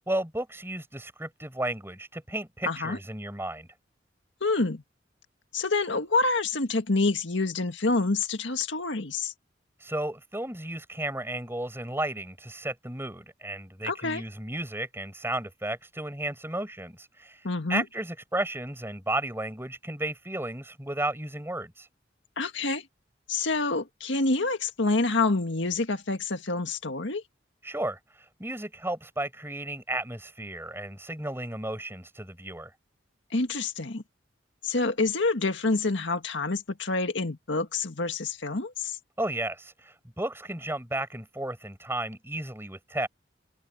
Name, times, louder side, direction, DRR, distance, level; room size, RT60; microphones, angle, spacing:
voice 1, 0.1-3.7 9.8-21.9 27.6-28.0 28.4-32.7 39.2-43.1, right 1 dB, 15° right, 7.6 m, -33 dB
voice 2, 2.6-3.0 4.4-4.8 5.5-9.3 13.8-14.2 17.4-17.8 22.4-22.9 23.3-27.2 33.3-34.0 34.6-39.0, left 3 dB, 75° left, 1.8 m, -27 dB
head